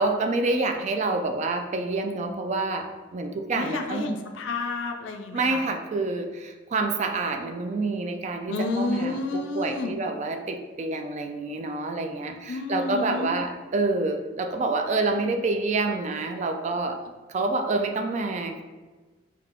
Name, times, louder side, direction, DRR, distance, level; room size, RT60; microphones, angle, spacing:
voice 1, 0.0-4.2 5.3-17.0 17.3-18.6, right 3 dB, 35° right, 5 dB, 0.3 m, -27 dB
voice 2, 3.5-5.7 8.5-9.9 12.5-13.4, left 3 dB, 70° left, 4 dB, 0.4 m, -30 dB
3.5 x 2.8 x 3.6 m, 1.3 s
head